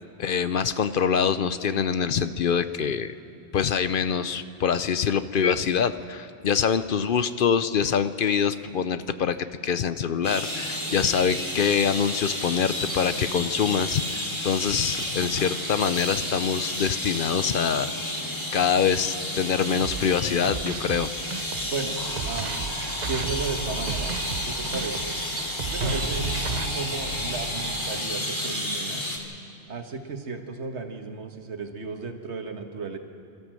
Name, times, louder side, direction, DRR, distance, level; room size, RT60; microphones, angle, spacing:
voice 1, 0.2-3.2 3.5-9.4 9.6-18.2 18.5-21.1, left 7 dB, 60° left, 12 dB, 0.7 m, -25 dB
sound 1, 10.2-29.2, left 1 dB, 25° left, 2.2 m, -31 dB
sound 2, 19.8-26.7, right 6 dB, 45° right, 0.7 m, -35 dB
voice 2, 21.6-22.6 23.1-25.2 25.6-26.3 26.7-29.0 29.7-33.0, right 4 dB, 90° right, 5 dB, 1.8 m, -34 dB
sound 3, 22.0-28.0, right 2 dB, 65° right, 1.9 m, -35 dB
27.5 x 13.0 x 7.6 m, 2.5 s
omnidirectional pair, 1.1 m